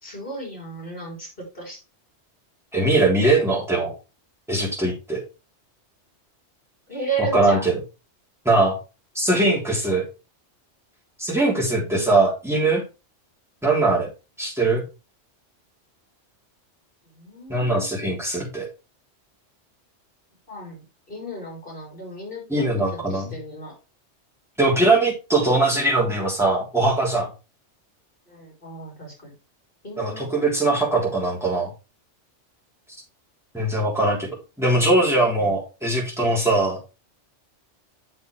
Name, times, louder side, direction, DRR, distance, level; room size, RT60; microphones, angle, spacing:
voice 1, 0.0-1.8 6.9-7.7 11.8-12.1 17.2-18.0 20.5-23.7 28.3-29.3 29.8-30.5, right 3 dB, 50° left, -2 dB, 4.1 m, -34 dB
voice 2, 2.7-3.9 4.5-5.2 7.2-7.8 8.5-8.8 9.2-10.1 11.2-12.9 13.6-14.1 14.4-14.8 17.5-18.7 22.5-23.4 24.6-27.3 30.0-31.7 33.5-36.9, right 2 dB, ahead, -4 dB, 3.5 m, -21 dB
7.7 x 6.8 x 3.3 m, 0.28 s
omnidirectional pair, 1.2 m